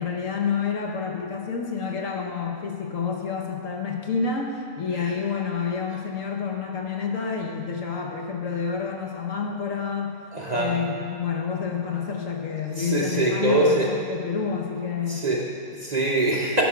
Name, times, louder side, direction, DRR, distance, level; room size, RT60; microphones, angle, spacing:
voice 1, 0.0-10.2 10.5-15.2, left 6 dB, 60° left, 1 dB, 1.1 m, -29 dB
voice 2, 10.3-10.8 12.8-13.9 15.1-16.6, right 2 dB, 35° right, -3 dB, 0.7 m, -24 dB
9.9 x 5.1 x 5.0 m, 2.2 s
omnidirectional pair, 1.6 m